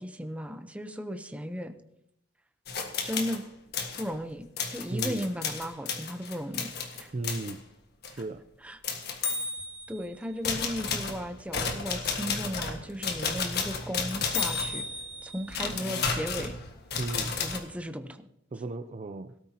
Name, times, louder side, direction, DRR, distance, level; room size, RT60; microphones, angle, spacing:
voice 1, 0.0-1.8 3.0-3.5 4.0-6.7 7.0-7.1 8.6-8.8 9.9-14.9 15.2-16.6 17.4-18.2, equal, 5° right, 7 dB, 0.8 m, -35 dB
sound 1, 2.7-3.4 3.7-4.1 4.6-7.5 8.0-8.2 8.8-10.0 10.4-17.6, left 5 dB, 55° left, 1.6 m, -32 dB
voice 2, 4.9-5.2 7.1-7.6 8.1-8.4 17.0-17.4 18.5-19.3, right 2 dB, 35° right, 9 dB, 0.4 m, -35 dB
17.5 x 13.0 x 2.9 m, 0.74 s
head